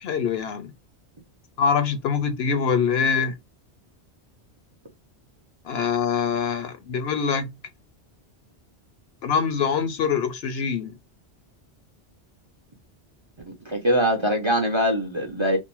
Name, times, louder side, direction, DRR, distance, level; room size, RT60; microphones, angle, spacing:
voice 1, 0.0-0.7 1.6-3.4 5.6-7.5 9.2-10.9, left 6 dB, 70° left, 0.8 m, -24 dB
voice 2, 13.7-15.6, equal, 35° right, 0.5 m, -22 dB
2.6 x 2.1 x 2.9 m
omnidirectional pair, 1.1 m